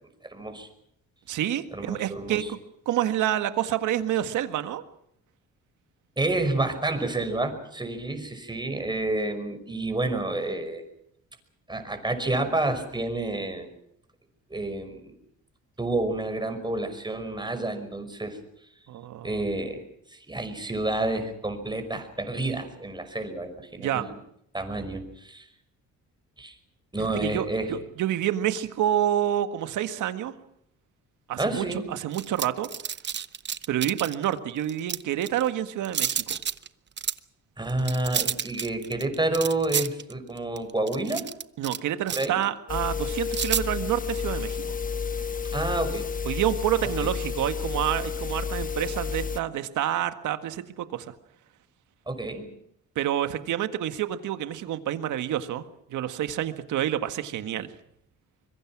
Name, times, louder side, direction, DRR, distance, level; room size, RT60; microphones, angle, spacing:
voice 1, 0.2-0.7 1.7-2.5 6.2-10.8 11.7-13.7 14.5-15.2 15.8-18.4 19.2-19.8 20.1-24.1 24.5-25.5 26.4-26.6 26.9-27.8 31.4-31.8 37.6-41.3 42.1-42.4 45.5-46.1 47.0-47.1 52.1-52.5, right 2 dB, 15° right, 7 dB, 5.6 m, -29 dB
voice 2, 1.3-2.6 2.9-4.8 18.9-19.4 23.8-24.1 27.0-30.3 31.3-32.7 33.7-36.4 41.6-44.8 46.2-51.1 53.0-55.6 55.9-57.7, right 11 dB, 80° right, 9 dB, 1.8 m, -28 dB
sound 1, 32.1-34.2 34.7-35.5 35.8-36.7 37.0-37.2 37.7-41.8 42.1-42.4 43.3-43.6, right 7 dB, 35° right, 0.8 m, -30 dB
sound 2, 42.7-49.4, left 6 dB, 25° left, 1.1 m, -31 dB
25.5 x 22.5 x 6.1 m, 0.74 s
cardioid pair, 90°, 30 cm